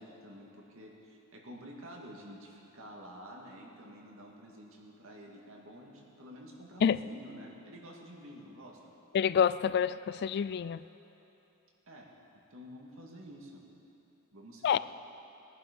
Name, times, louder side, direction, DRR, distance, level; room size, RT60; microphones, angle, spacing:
voice 1, 0.0-8.9 11.9-12.1 12.5-13.6 14.3-14.8, equal, 65° right, -1 dB, 2.2 m, -49 dB
voice 2, 9.1-10.8 14.6-14.8, left 7 dB, 50° left, 16 dB, 0.3 m, -27 dB
20.0 x 11.0 x 5.3 m, 2.9 s
head